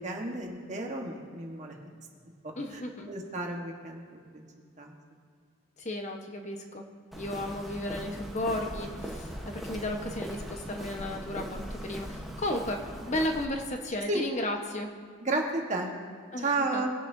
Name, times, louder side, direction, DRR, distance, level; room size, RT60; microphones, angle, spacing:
voice 1, 0.0-1.8 2.4-2.8 3.1-4.0 4.3-4.4 4.8-4.9 14.1-14.2 15.2-15.9 16.4-16.9, right 2 dB, 35° right, 1 dB, 1.3 m, -32 dB
voice 2, 2.6-3.1 5.8-6.8 7.2-14.9 16.3-16.8, left 1 dB, 35° left, 3 dB, 1.1 m, -34 dB
Walk footsteps, 7.1-13.5, equal, ahead, 1.0 m, -40 dB
20.5 x 10.0 x 2.7 m, 2.1 s
head